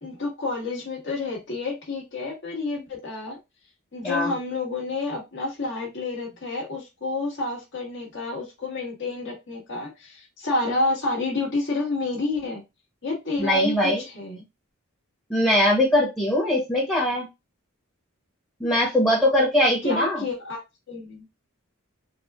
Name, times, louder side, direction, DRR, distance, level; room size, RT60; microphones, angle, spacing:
voice 1, 0.0-3.4 3.9-12.6 13.0-14.4 19.8-20.6 20.9-21.2, left 3 dB, 60° left, -3 dB, 1.7 m, -29 dB
voice 2, 13.4-14.0 15.3-17.3 18.6-20.2, left 1 dB, 10° left, -3 dB, 1.1 m, -21 dB
4.2 x 2.4 x 2.3 m, 0.23 s
head